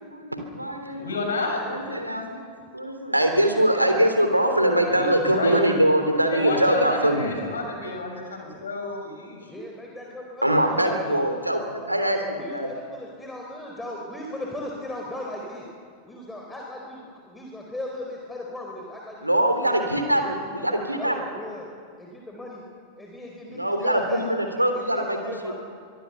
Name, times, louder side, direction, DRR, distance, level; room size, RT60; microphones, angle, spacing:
voice 1, 0.0-1.1 1.7-7.3 10.4-12.2 12.5-12.7 19.2-21.1 23.5-25.5, right 1 dB, 85° right, 5 dB, 3.3 m, -23 dB
voice 2, 0.9-1.6 4.8-5.6 6.3-9.5, left 3 dB, 70° left, 2 dB, 6.4 m, -31 dB
voice 3, 9.5-11.2 12.4-15.7 16.1-19.3 19.6-19.9 20.2-21.7 22.0-22.6 23.0-24.2 24.7-25.5, left 1 dB, 10° left, -1 dB, 4.2 m, -37 dB
24.5 x 22.5 x 7.1 m, 2.1 s
figure-of-eight pair, 90°, 0 cm